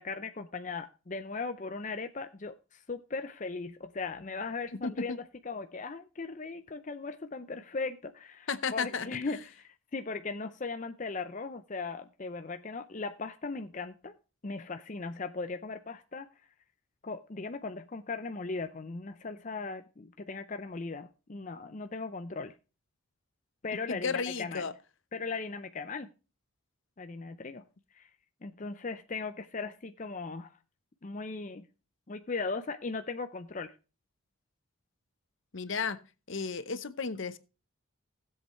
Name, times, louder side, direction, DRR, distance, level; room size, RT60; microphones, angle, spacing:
voice 1, 0.0-14.1 14.4-16.3 17.0-22.5 23.6-24.7 25.1-26.1 27.0-27.6 27.9-28.1 28.4-30.5 31.0-31.7 32.1-33.7, left 4 dB, 35° left, 8 dB, 0.6 m, -38 dB
voice 2, 4.8-5.2 8.5-9.4 23.9-24.7 35.5-36.0 36.3-37.4, left 5 dB, 65° left, 14 dB, 0.8 m, -33 dB
16.5 x 7.9 x 3.1 m, 0.32 s
head